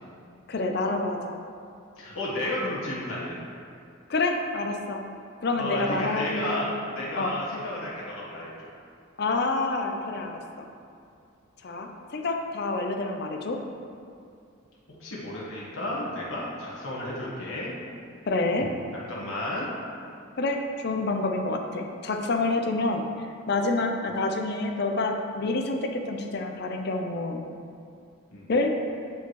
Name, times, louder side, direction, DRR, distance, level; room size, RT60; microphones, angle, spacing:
voice 1, 0.5-1.3 4.1-5.0 5.4-6.6 7.2-7.3 9.2-10.6 11.6-13.6 18.3-18.7 20.4-23.0 23.5-27.4 28.5-28.8, left 2 dB, 50° left, 4 dB, 0.5 m, -28 dB
voice 2, 2.0-3.4 5.6-8.5 15.0-17.7 18.9-19.7 28.3-28.5, left 1 dB, 80° left, -6 dB, 1.3 m, -32 dB
8.0 x 5.5 x 3.1 m, 2.5 s
head